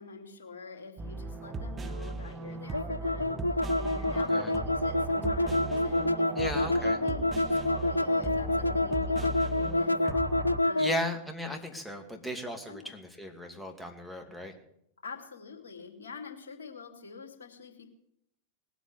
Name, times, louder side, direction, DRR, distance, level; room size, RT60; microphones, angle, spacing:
voice 1, 0.0-3.4 3.7-10.0 10.6-11.1 12.7-12.9 15.0-17.9, left 5 dB, 65° left, 4 dB, 2.6 m, -45 dB
sound 1, 1.0-10.6, right 3 dB, 20° right, 1.1 m, -37 dB
sound 2, 2.7-11.0, left 2 dB, 85° left, 0.5 m, -28 dB
voice 2, 4.1-4.5 6.3-7.0 10.8-14.5, equal, 5° left, 4 dB, 2.5 m, -36 dB
19.5 x 8.2 x 8.4 m, 0.74 s
figure-of-eight pair, 90°, 0 cm